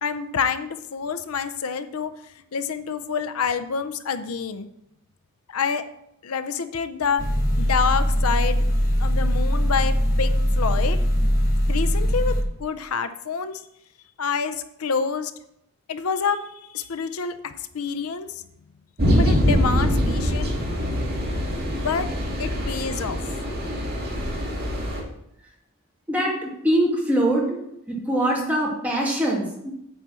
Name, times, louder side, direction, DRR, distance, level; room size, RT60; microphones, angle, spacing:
voice 1, 0.0-4.7 5.5-5.8 6.2-7.2 7.6-8.6 9.0-11.0 11.7-13.6 14.2-15.3 15.9-18.4 19.1-20.5 21.8-22.1 22.4-23.2, left 6 dB, 85° left, 11 dB, 0.6 m, -27 dB
sound 1, 7.2-12.4, equal, 40° left, 1.3 m, -21 dB
sound 2, 19.0-25.0, equal, 45° right, 2.3 m, -24 dB
voice 2, 26.1-27.6 27.9-29.7, right 1 dB, 5° right, -3 dB, 2.2 m, -23 dB
9.0 x 4.4 x 7.4 m, 0.79 s
head